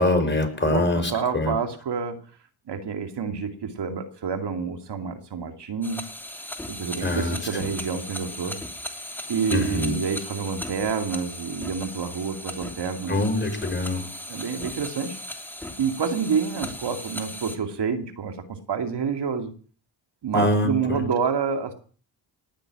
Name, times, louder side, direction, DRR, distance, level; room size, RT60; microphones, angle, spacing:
voice 1, 0.0-1.6 7.0-7.4 9.5-10.0 13.1-14.1 20.3-21.0, left 2 dB, 25° left, 6 dB, 5.4 m, -24 dB
voice 2, 1.1-2.2 2.7-6.0 6.7-8.6 9.3-13.3 14.3-15.2 15.8-19.5 20.2-21.7, right 6 dB, 60° right, 6 dB, 2.4 m, -28 dB
sound 1, 5.8-17.6, left 1 dB, 5° left, 2.9 m, -37 dB
19.0 x 6.7 x 9.9 m, 0.42 s
cardioid pair, 65°, 45 cm